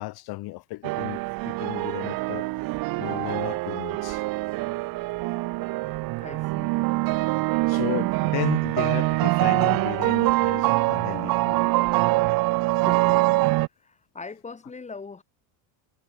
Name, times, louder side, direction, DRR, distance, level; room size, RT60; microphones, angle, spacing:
voice 1, 0.0-2.5 3.0-4.2 7.7-11.6, left 20 dB, 55° left, 2.0 m, -34 dB
sound 1, 0.8-13.7, right 21 dB, 50° right, 0.8 m, -24 dB
voice 2, 6.2-6.8 12.7-13.4 13.8-15.2, left 4 dB, 15° left, 4.6 m, -41 dB
cardioid pair, 160°, 45 cm